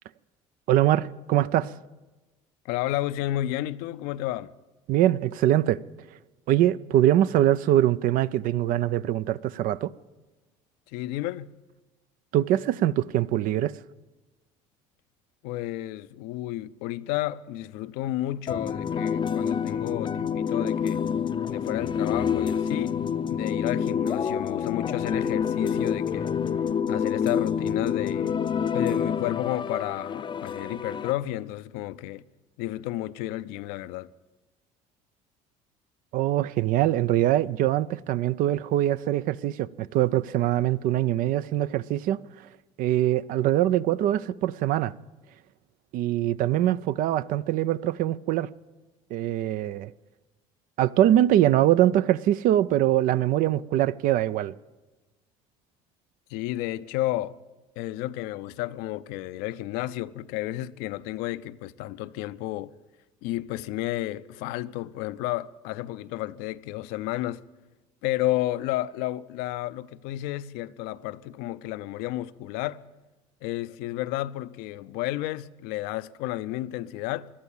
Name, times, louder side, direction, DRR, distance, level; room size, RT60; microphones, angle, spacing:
voice 1, 0.7-1.7 4.9-5.8 6.5-9.9 12.3-13.8 36.1-42.2 42.8-44.9 45.9-48.5 49.1-49.9 50.8-54.5, right 13 dB, 65° right, 0.5 m, -23 dB
voice 2, 2.6-4.5 10.9-11.5 15.4-21.0 21.5-23.0 23.3-26.4 26.9-28.4 28.7-32.2 32.6-34.1 56.3-57.4 57.8-62.7 63.2-67.4 68.0-72.8 73.4-77.3, left 15 dB, 75° left, 0.6 m, -31 dB
sound 1, 18.5-31.1, left 7 dB, 30° left, 0.5 m, -27 dB
17.5 x 11.5 x 7.2 m
supercardioid pair, 80°, 16 cm